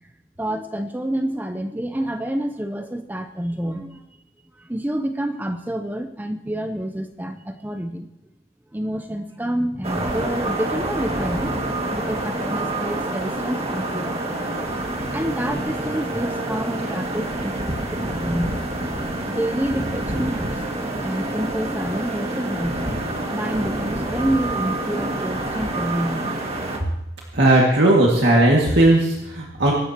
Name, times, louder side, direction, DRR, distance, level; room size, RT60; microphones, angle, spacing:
voice 1, 0.4-4.0 4.6-8.1 8.7-11.6 11.9-14.2 15.1-18.6 19.3-22.8 23.3-26.3, right 1 dB, 10° right, 7 dB, 0.7 m, -28 dB
sound 1, 9.8-26.8, right 1 dB, 35° right, 2.0 m, -27 dB
voice 2, 27.3-29.7, right 1 dB, 70° right, -2 dB, 2.2 m, -16 dB
24.5 x 12.5 x 3.0 m, 0.86 s
head